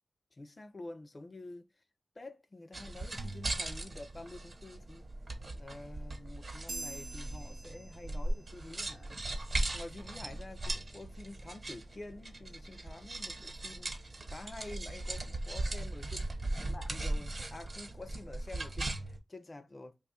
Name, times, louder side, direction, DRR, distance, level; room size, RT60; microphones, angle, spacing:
voice 1, 0.3-1.8 2.2-5.1 5.5-9.2 9.7-14.0 14.3-16.4 16.6-20.0, left 2 dB, 40° left, 0.4 m, -48 dB
sound 1, 2.7-19.2, right 2 dB, 45° right, 0.9 m, -38 dB
sound 2, 6.7-8.5, right 2 dB, 30° right, 0.5 m, -45 dB
2.9 x 2.3 x 4.1 m
wide cardioid pair, 70°, 0 cm